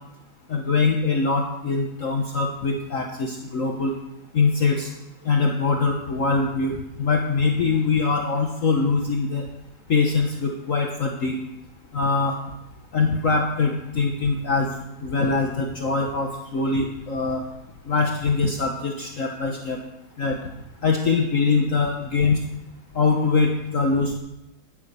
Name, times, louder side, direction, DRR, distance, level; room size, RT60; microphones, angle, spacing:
voice 1, 0.5-3.9 4.3-4.9 5.2-9.5 9.9-11.4 11.9-12.4 12.9-14.7 15.0-17.4 17.9-19.8 20.2-20.4 20.8-22.4 22.9-24.1, left 4 dB, 50° left, 1 dB, 1.6 m, -23 dB
19.5 x 7.5 x 6.8 m, 0.91 s
omnidirectional pair, 1.9 m